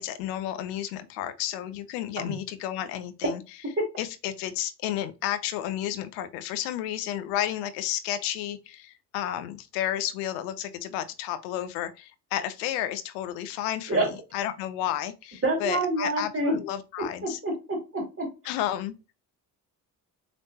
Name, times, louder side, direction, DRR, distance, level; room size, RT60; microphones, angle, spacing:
voice 1, 0.0-3.4 4.0-17.4 18.4-19.0, left 12 dB, 90° left, 0.7 m, -32 dB
voice 2, 15.4-16.6 17.2-18.3, right 2 dB, 30° right, 2.7 m, -27 dB
5.1 x 3.4 x 2.7 m
hypercardioid pair, 50°, 45 cm